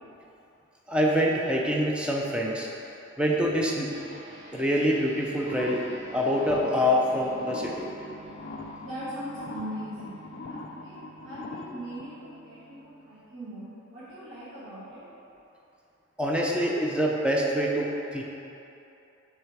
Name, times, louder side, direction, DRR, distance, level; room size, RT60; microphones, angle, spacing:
voice 1, 0.9-2.7 3.2-4.0 4.5-5.9 6.1-7.9 16.2-18.2, equal, 5° right, -2 dB, 0.5 m, -25 dB
sound 1, 3.9-13.6, right 2 dB, 35° right, 1.4 m, -50 dB
sound 2, 5.4-12.0, left 3 dB, 50° left, 0.3 m, -42 dB
voice 2, 8.8-10.2 10.5-15.0, equal, 70° right, -13 dB, 1.3 m, -40 dB
6.1 x 3.3 x 4.9 m, 2.8 s
head